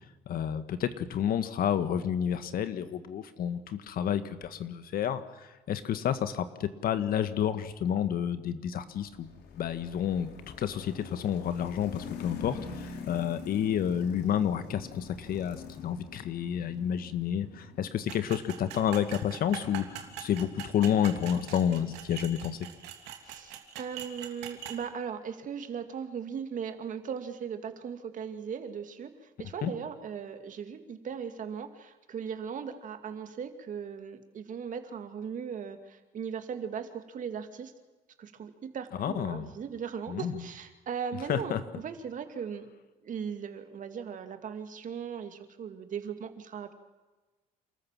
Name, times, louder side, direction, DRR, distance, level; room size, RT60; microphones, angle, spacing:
voice 1, 0.3-10.3 10.6-22.6 29.6-29.7 39.0-39.5 40.1-40.3 41.3-41.6, left 9 dB, 60° left, 11 dB, 1.7 m, -30 dB
sound 1, 9.0-22.1, left 6 dB, 80° left, 3.7 m, -46 dB
sound 2, 18.1-24.8, right 10 dB, 90° right, 2.9 m, -43 dB
voice 2, 23.2-37.7 38.2-42.7 43.0-46.7, right 7 dB, 50° right, 8 dB, 2.4 m, -38 dB
28.5 x 14.0 x 7.5 m, 1.2 s
cardioid pair, 110°, 17 cm